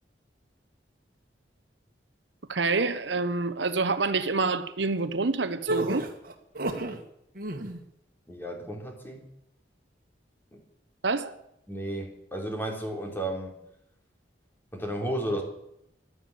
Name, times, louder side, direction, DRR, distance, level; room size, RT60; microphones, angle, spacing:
voice 1, 2.5-6.1 11.0-11.4, right 3 dB, 80° right, 1.1 m, -27 dB
sound 1, 5.7-7.0 7.3-7.8, right 2 dB, 55° right, 2.0 m, -31 dB
voice 2, 8.3-9.2 10.5-10.6 11.7-13.6 14.7-15.4, right 1 dB, 10° left, 3.4 m, -33 dB
16.0 x 12.0 x 7.0 m
head